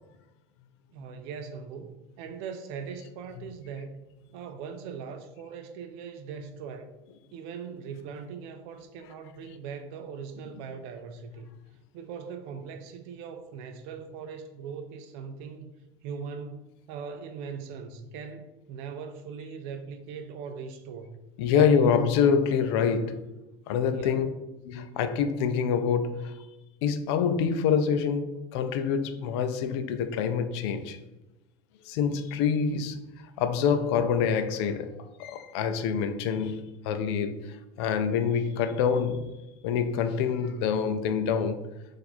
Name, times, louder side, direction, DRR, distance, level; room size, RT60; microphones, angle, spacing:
voice 1, 0.9-4.1 4.3-6.9 7.3-11.5 11.9-15.7 16.0-21.2 21.5-21.9 23.9-24.2, right 6 dB, 70° right, 0.4 m, -40 dB
voice 2, 21.4-23.3 23.7-24.3 24.6-26.5 26.8-31.0 31.8-33.0 33.4-34.9 35.2-39.4 39.6-41.7, left 7 dB, 75° left, 0.4 m, -26 dB
4.3 x 2.5 x 4.1 m
supercardioid pair, 105°, 14 cm